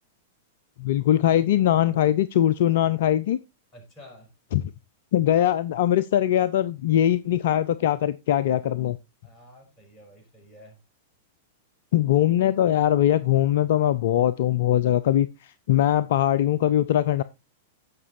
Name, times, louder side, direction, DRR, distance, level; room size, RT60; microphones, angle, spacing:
voice 1, 0.8-3.4 4.5-4.6 5.1-9.0 11.9-17.2, left 11 dB, 55° left, 0.4 m, -21 dB
voice 2, 3.7-4.3 9.2-10.8, equal, 20° left, 5.5 m, -50 dB
17.5 x 6.0 x 2.7 m
figure-of-eight pair, 95°, 0 cm